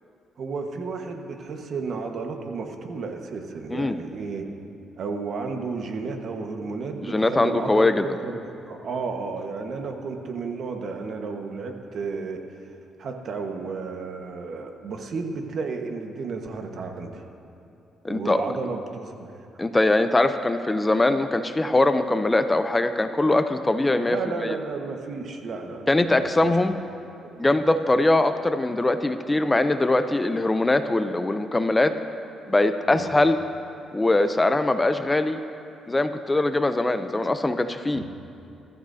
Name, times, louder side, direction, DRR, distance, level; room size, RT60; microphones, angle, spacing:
voice 1, 0.4-4.5 5.0-7.9 8.2-12.4 13.0-17.2 18.1-19.7 24.1-26.6 27.3-27.5 32.8-33.0 37.9-38.1, right 4 dB, 60° right, 3 dB, 1.4 m, -33 dB
voice 2, 7.0-8.0 18.0-18.4 19.6-24.6 25.9-26.8 27.4-31.9 32.5-33.4 33.9-35.4 35.9-38.0, left 2 dB, 15° left, 9 dB, 0.6 m, -22 dB
21.5 x 13.5 x 2.8 m, 2.6 s
cardioid pair, 90°, 0 cm